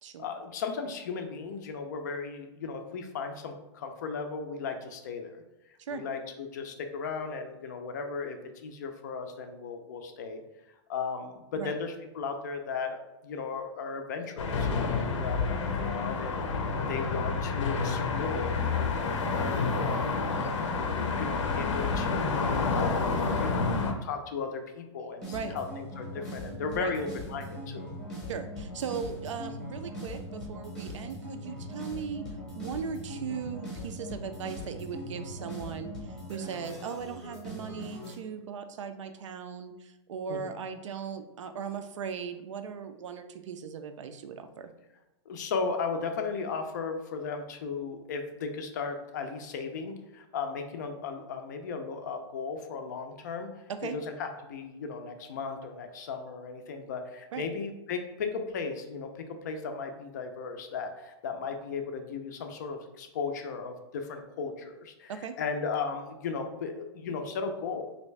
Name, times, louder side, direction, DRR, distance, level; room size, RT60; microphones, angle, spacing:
voice 1, 0.2-5.4 5.9-10.4 10.9-22.4 22.7-23.1 23.4-28.0 40.3-40.5 45.3-67.8, left 5 dB, 40° left, 5 dB, 0.4 m, -36 dB
sound 1, 14.4-23.9, left 4 dB, 85° left, 0.6 m, -29 dB
sound 2, 25.2-38.1, equal, 5° left, 0.7 m, -40 dB
voice 2, 28.3-32.3 32.6-44.7 53.7-54.0 57.3-57.5 65.1-65.4, right 6 dB, 85° right, 8 dB, 0.4 m, -38 dB
3.1 x 2.6 x 3.2 m, 0.99 s
hypercardioid pair, 170°, 15 cm